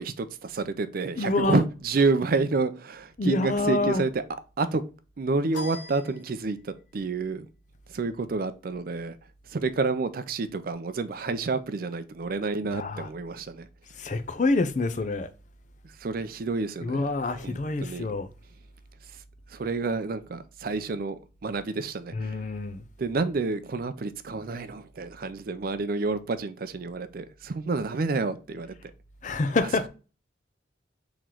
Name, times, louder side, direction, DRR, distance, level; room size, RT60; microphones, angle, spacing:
voice 1, 0.0-4.2 4.6-4.8 5.2-7.5 7.9-9.2 9.5-13.7 16.0-17.0 17.4-18.1 19.5-22.4 23.0-28.9, right 3 dB, 55° right, 0.4 m, -29 dB
voice 2, 1.2-1.7 3.2-4.0 12.7-13.1 13.9-15.3 16.8-18.3 22.1-22.8 29.2-29.9, left 2 dB, 45° left, 0.5 m, -27 dB
sound 1, 5.5-6.9, left 1 dB, 85° left, 1.2 m, -42 dB
3.8 x 3.1 x 4.4 m
head